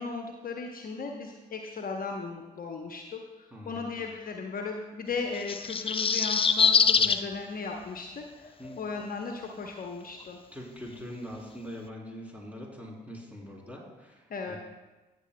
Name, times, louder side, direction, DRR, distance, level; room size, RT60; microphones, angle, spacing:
voice 1, 0.0-8.5 8.8-10.4 14.3-14.6, left 4 dB, 45° left, 2 dB, 0.9 m, -36 dB
voice 2, 3.5-4.1 7.0-7.3 8.6-8.8 10.5-14.6, equal, 5° right, -2 dB, 3.3 m, -43 dB
sound 1, 5.4-7.2 8.6-8.7, left 6 dB, 25° left, 0.5 m, -23 dB
17.5 x 6.8 x 2.2 m, 1.2 s
hypercardioid pair, 45°, 21 cm